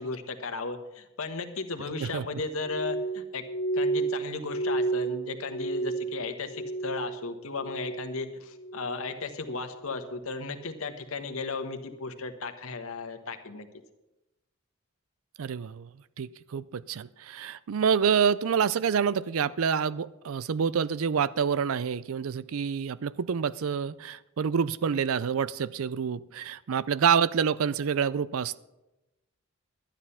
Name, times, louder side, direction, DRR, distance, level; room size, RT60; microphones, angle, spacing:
voice 1, 0.0-3.4 3.7-13.7, left 3 dB, 75° left, 6 dB, 1.2 m, -35 dB
Glass, 2.6-7.2 7.5-8.2 8.6-9.1 9.7-10.0, right 3 dB, 55° left, 0.7 m, -31 dB
voice 2, 15.4-15.9 16.2-28.6, right 7 dB, 75° right, 19 dB, 0.4 m, -27 dB
12.0 x 9.8 x 5.6 m, 0.98 s
head